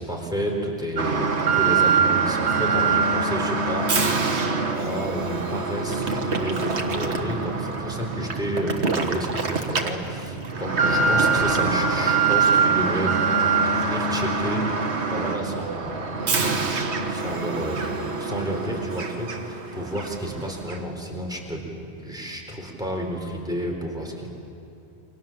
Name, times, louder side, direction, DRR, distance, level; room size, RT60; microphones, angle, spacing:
voice 1, 0.0-4.3 4.7-16.8 17.1-21.6 22.0-24.3, right 1 dB, 5° right, 0 dB, 4.1 m, -31 dB
Alarm, 1.0-19.6 20.0-20.1 20.7-20.8, right 4 dB, 70° right, 1.8 m, -24 dB
29.0 x 25.0 x 7.5 m, 2.7 s
omnidirectional pair, 1.2 m